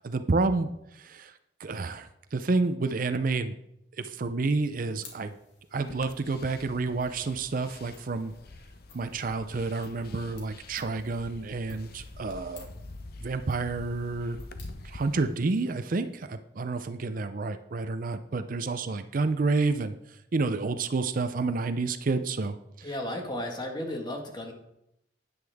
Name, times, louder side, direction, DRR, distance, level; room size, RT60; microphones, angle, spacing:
voice 1, 0.0-1.3 1.6-3.6 4.0-5.3 5.7-8.3 8.9-12.7 13.2-14.4 14.8-22.9, right 3 dB, 50° right, 10 dB, 0.5 m, -29 dB
sound 1, 4.6-16.3, left 3 dB, 90° left, 2.6 m, -57 dB
sound 2, 5.8-15.2, left 2 dB, 60° left, 0.7 m, -46 dB
voice 2, 22.8-24.5, left 1 dB, 25° left, 2 dB, 1.6 m, -34 dB
9.6 x 9.5 x 3.5 m, 0.82 s
head